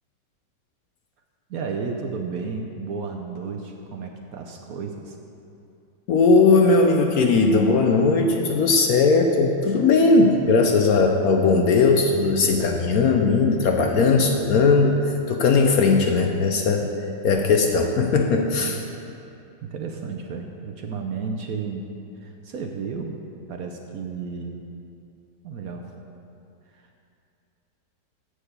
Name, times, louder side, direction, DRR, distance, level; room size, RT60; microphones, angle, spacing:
voice 1, 1.5-5.2 18.7-18.8 19.6-21.9 22.2-23.2 23.5-24.6 25.4-25.9 26.7-26.9, right 5 dB, 65° right, 3 dB, 1.0 m, -32 dB
voice 2, 6.1-16.9 17.2-18.8, left 4 dB, 65° left, 3 dB, 1.0 m, -18 dB
7.3 x 6.5 x 8.0 m, 2.6 s
omnidirectional pair, 1.9 m